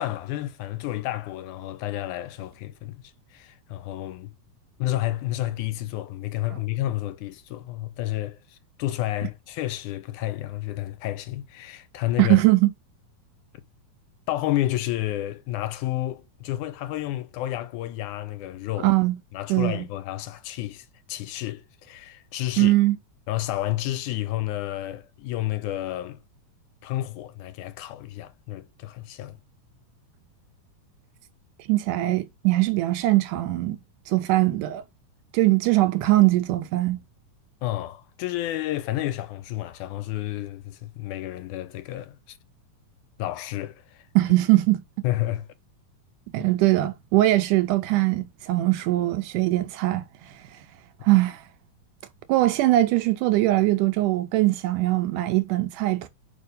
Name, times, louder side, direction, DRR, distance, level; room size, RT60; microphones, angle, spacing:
voice 1, 0.0-3.0 3.3-4.3 4.8-12.4 14.3-18.9 19.3-22.7 23.3-26.2 26.8-29.4 37.6-42.4 43.2-44.1 45.0-45.5 51.1-51.2, left 15 dB, 80° left, 2.0 m, -30 dB
voice 2, 12.2-12.7 18.8-19.2 19.5-19.9 22.6-23.0 31.7-33.8 34.1-34.8 35.3-37.0 44.2-44.8 46.3-50.7 51.0-51.5 52.3-56.1, right 17 dB, 80° right, 2.1 m, -21 dB
5.1 x 4.9 x 5.3 m
omnidirectional pair, 3.7 m